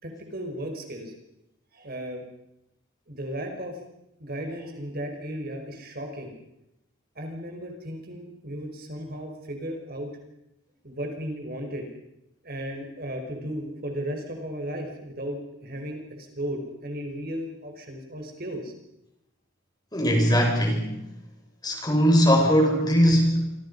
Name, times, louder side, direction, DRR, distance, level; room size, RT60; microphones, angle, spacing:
voice 1, 0.0-1.1 1.7-2.2 3.1-3.8 4.2-6.3 7.2-10.1 10.8-11.9 12.4-18.7, equal, 50° right, 3 dB, 5.2 m, -35 dB
voice 2, 19.9-21.0 21.6-23.6, equal, 20° left, 2 dB, 6.0 m, -20 dB
28.0 x 25.5 x 5.6 m, 0.86 s
head